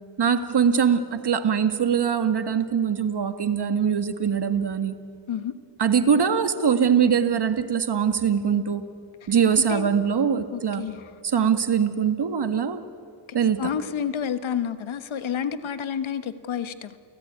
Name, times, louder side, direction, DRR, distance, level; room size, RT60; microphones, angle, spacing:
voice 1, 0.2-5.0 5.8-8.8 9.3-10.9 11.2-12.8 13.3-13.7, right 7 dB, 55° right, 9 dB, 1.9 m, -22 dB
voice 2, 10.5-11.0 13.6-17.0, left 8 dB, 75° left, 11 dB, 1.4 m, -29 dB
30.0 x 18.5 x 9.6 m, 2.5 s
cardioid pair, 70°, 47 cm